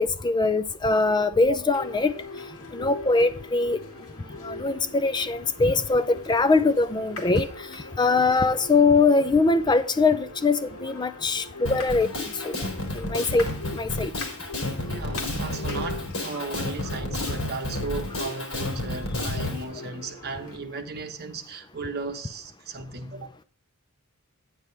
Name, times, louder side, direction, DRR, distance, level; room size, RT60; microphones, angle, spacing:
voice 1, 0.0-2.1 2.7-3.8 4.4-7.5 8.0-12.5 12.9-13.5 13.7-14.1, left 3 dB, 20° left, 0.4 m, -22 dB
voice 2, 1.2-1.6 14.9-23.3, right 3 dB, 50° right, 1.2 m, -36 dB
sound 1, 1.7-20.6, left 3 dB, 85° left, 2.1 m, -41 dB
Drum kit, 11.6-19.6, left 1 dB, 70° left, 3.8 m, -31 dB
9.5 x 9.2 x 3.3 m
head